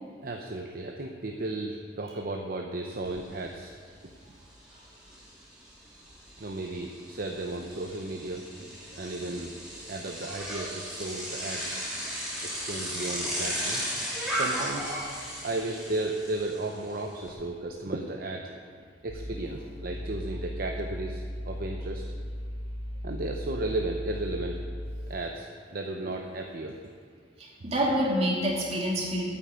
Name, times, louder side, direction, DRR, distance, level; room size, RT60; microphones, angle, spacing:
voice 1, 0.0-3.7 6.4-11.7 12.4-13.8 14.3-15.0 15.4-18.6 19.0-22.0 23.0-24.6 25.1-26.8, right 2 dB, 55° right, 2 dB, 0.7 m, -34 dB
Bicycle, 3.0-3.1 3.5-17.3, equal, 5° right, 2.8 m, -36 dB
sound 1, 19.1-25.2, equal, 70° left, 1.7 m, -37 dB
voice 2, 27.4-29.2, equal, 35° right, -3 dB, 2.6 m, -27 dB
9.3 x 8.7 x 7.4 m, 2.1 s
head